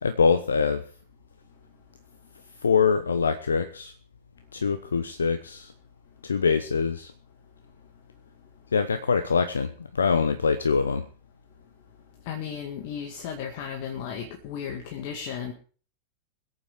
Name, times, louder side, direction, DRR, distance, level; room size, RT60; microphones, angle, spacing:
voice 1, 0.0-0.8 2.6-3.9 4.5-5.7 6.2-7.1 8.7-11.1, left 5 dB, 70° left, 10 dB, 0.8 m, -24 dB
voice 2, 12.3-15.5, left 8 dB, 50° left, 3 dB, 1.9 m, -34 dB
22.0 x 8.6 x 4.9 m, 0.42 s
figure-of-eight pair, 90°, 0 cm